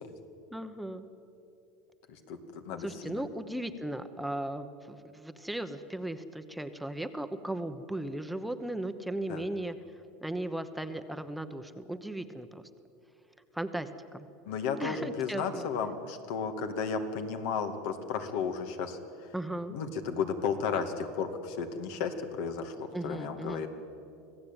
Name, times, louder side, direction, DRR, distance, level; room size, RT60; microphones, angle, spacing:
voice 1, 0.5-1.1 2.8-9.8 10.2-12.6 13.5-14.3 14.8-15.7 19.3-19.7 22.9-23.6, right 1 dB, 5° right, 8 dB, 1.0 m, -36 dB
voice 2, 2.3-3.2 9.3-9.4 14.5-19.0 19.7-23.7, left 6 dB, 70° left, 7 dB, 2.2 m, -34 dB
26.0 x 16.5 x 9.0 m, 2.7 s
supercardioid pair, 130°, 0 cm